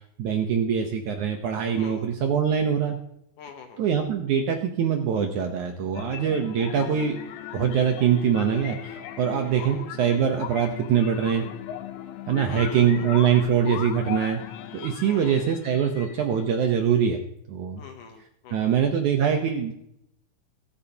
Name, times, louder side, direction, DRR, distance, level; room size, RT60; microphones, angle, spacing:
voice 1, 0.0-3.0 3.8-7.2 7.5-11.4 12.3-14.4 14.7-17.2 17.5-17.8 18.5-19.7, right 8 dB, 70° right, 4 dB, 1.9 m, -23 dB
voice 2, 1.7-2.1 3.4-3.8 9.5-9.9 12.5-13.1 15.0-15.4 17.8-18.8, left 6 dB, 70° left, 5 dB, 2.2 m, -44 dB
sound 1, 5.9-16.5, left 11 dB, 90° left, 2.9 m, -38 dB
21.5 x 8.7 x 2.9 m, 0.74 s
omnidirectional pair, 4.5 m